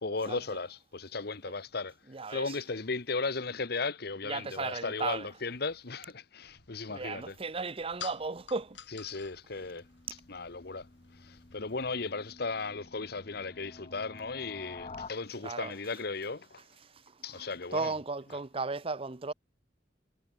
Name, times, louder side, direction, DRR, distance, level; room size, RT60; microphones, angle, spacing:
voice 1, 0.0-1.9 2.3-7.4 8.9-9.8 10.3-10.9 11.2-16.6 17.2-17.9, left 3 dB, 55° left, 1.2 m, -36 dB
voice 2, 2.1-2.5 4.2-5.3 6.9-8.8 15.4-15.7 17.3-17.4 17.7-19.3, right 4 dB, 30° right, 0.7 m, -35 dB
sound 1, 6.4-11.9, left 8 dB, 70° left, 3.0 m, -51 dB
sound 2, 9.5-15.1, left 3 dB, 35° left, 0.8 m, -50 dB
head